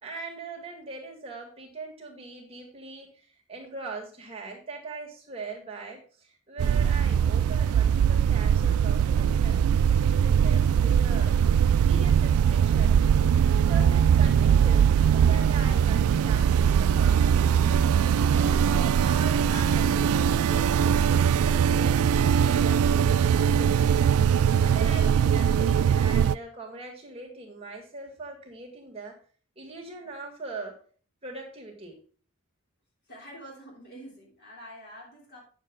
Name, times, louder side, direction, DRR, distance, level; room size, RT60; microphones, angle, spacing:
voice 1, 0.0-11.3 11.8-13.0 13.5-17.9 18.3-24.0 24.6-29.2 29.6-30.8 31.2-32.0, right 3 dB, 25° right, 0 dB, 2.0 m, -41 dB
sound 1, 6.6-26.3, right 8 dB, 80° right, 0.3 m, -21 dB
voice 2, 33.1-35.4, equal, 50° left, -3 dB, 3.4 m, -46 dB
8.6 x 7.1 x 3.8 m, 0.41 s
head